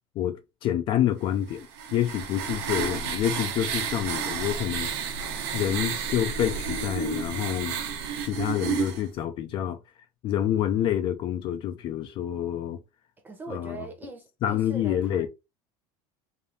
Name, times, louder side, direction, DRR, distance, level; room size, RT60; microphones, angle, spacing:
voice 1, 0.2-4.9 5.5-7.8 8.2-9.8 10.2-12.8 13.5-13.8 14.4-15.3, left 11 dB, 40° left, 0.5 m, -27 dB
sound 1, 1.5-9.0, right 6 dB, 75° right, 1.1 m, -31 dB
voice 2, 13.2-15.3, right 2 dB, 15° right, 0.9 m, -41 dB
3.5 x 2.6 x 3.9 m
cardioid pair, 150°, 13 cm